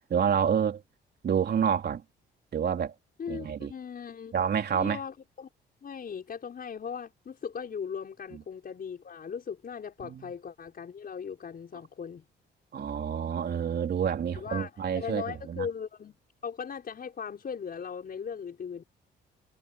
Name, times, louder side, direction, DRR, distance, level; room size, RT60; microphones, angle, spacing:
voice 1, 0.1-0.8 1.2-2.0 2.5-2.9 3.3-3.7 4.3-5.0 10.0-10.3 12.7-15.7, right 8 dB, 55° right, 3.5 m, -28 dB
voice 2, 3.2-4.3 4.7-5.5 5.8-12.2 14.3-18.8, left 6 dB, 50° left, 6.0 m, -38 dB
cardioid pair, 90°, 20 cm